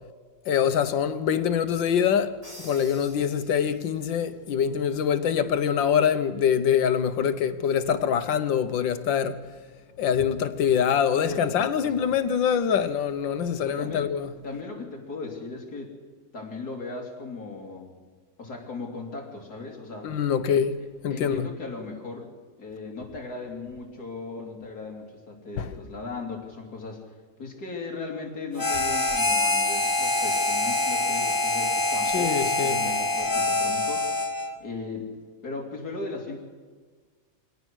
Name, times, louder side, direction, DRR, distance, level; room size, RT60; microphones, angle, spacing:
voice 1, 0.5-2.4 2.6-9.4 10.0-14.3 20.0-21.5 25.6-25.7 32.1-32.8, left 8 dB, 85° left, 1.7 m, -24 dB
Crash cymbal, 2.4-4.1, equal, 20° right, 5.2 m, -47 dB
voice 2, 11.2-12.1 13.6-14.1 14.4-15.9 16.3-17.9 18.4-20.1 21.1-22.3 22.6-27.0 27.4-34.1 34.6-35.1 35.4-36.4, left 3 dB, 55° left, 3.5 m, -37 dB
Harmonica, 28.6-34.6, left 2 dB, 20° left, 0.6 m, -25 dB
24.5 x 17.5 x 6.3 m
omnidirectional pair, 2.0 m